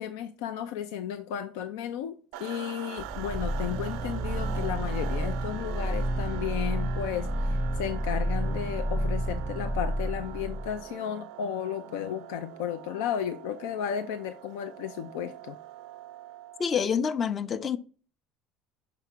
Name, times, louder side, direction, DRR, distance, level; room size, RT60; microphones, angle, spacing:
voice 1, 0.0-15.6, left 9 dB, 85° left, 0.4 m, -34 dB
sound 1, 2.3-16.9, right 14 dB, 80° right, 0.4 m, -43 dB
sound 2, 3.0-10.8, equal, 5° right, 0.6 m, -30 dB
voice 2, 16.6-17.8, left 7 dB, 35° left, 0.6 m, -27 dB
5.8 x 3.5 x 5.9 m
supercardioid pair, 110°, 0 cm